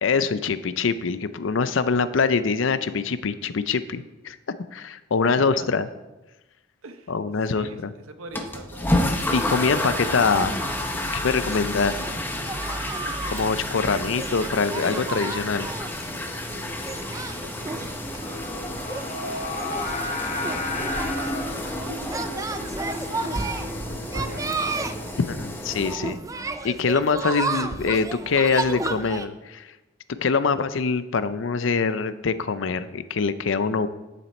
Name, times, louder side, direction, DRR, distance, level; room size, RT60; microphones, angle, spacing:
voice 1, 0.0-4.4 4.7-5.9 7.1-7.9 9.3-10.5 11.2-12.0 13.2-15.7 25.3-26.2 26.6-29.6 30.2-33.9, left 5 dB, 65° left, 13 dB, 0.5 m, -24 dB
voice 2, 5.2-5.9 6.8-7.1 7.4-9.0 9.6-10.2 11.8-12.0 13.8-14.2 17.2-19.4 20.2-21.5 22.1-24.8, right 3 dB, 90° right, 7 dB, 1.0 m, -44 dB
sound 1, 8.3-26.0, left 1 dB, 10° left, 0.7 m, -31 dB
sound 2, 9.8-29.3, right 3 dB, 15° right, 0.3 m, -33 dB
Singing, 18.2-25.3, left 3 dB, 35° left, 0.9 m, -34 dB
10.0 x 7.2 x 4.3 m, 1.0 s
head